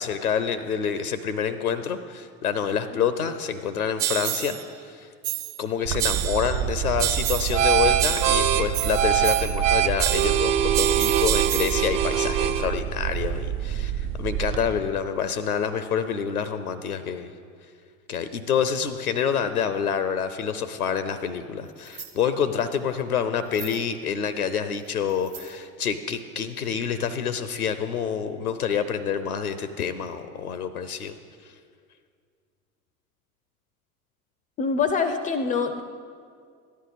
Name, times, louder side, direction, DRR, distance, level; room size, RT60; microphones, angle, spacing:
voice 1, 0.0-5.1 5.6-17.3 18.1-31.1 31.4-31.5, left 7 dB, 85° left, 11 dB, 0.6 m, -27 dB
sound 1, 4.0-4.6 5.2-5.6 6.0-6.6 7.0-7.7 8.0-9.6 10.0-11.9, right 14 dB, 35° right, 0.6 m, -28 dB
sound 2, 5.9-14.7, right 10 dB, 60° right, 0.8 m, -24 dB
sound 3, 21.7-22.2 22.6-22.7 23.4-23.8 24.8-25.6 26.6-26.7 26.9-27.0, right 6 dB, 80° right, 1.0 m, -43 dB
voice 2, 34.6-35.8, left 5 dB, 20° left, 9 dB, 0.4 m, -24 dB
14.0 x 10.5 x 4.0 m, 2.1 s
figure-of-eight pair, 70°, 43 cm